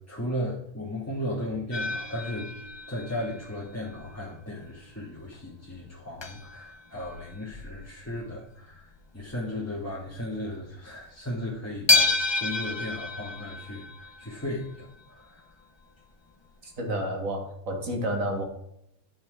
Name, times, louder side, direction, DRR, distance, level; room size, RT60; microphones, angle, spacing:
voice 1, 0.0-2.5 2.9-8.9 9.1-15.4, left 1 dB, 10° left, -3 dB, 1.2 m, -35 dB
sound 1, 1.7-4.2 4.7-4.8 5.3-5.4 5.7-5.8 6.2-8.3 8.7-9.0 9.2-9.3 9.9-10.1 10.5-10.6 11.9-14.8 16.0-16.1 16.5-16.6, left 3 dB, 30° left, 0.5 m, -30 dB
voice 2, 16.8-18.4, equal, 65° right, 2 dB, 2.4 m, -30 dB
10.5 x 5.5 x 4.6 m, 0.75 s
omnidirectional pair, 1.6 m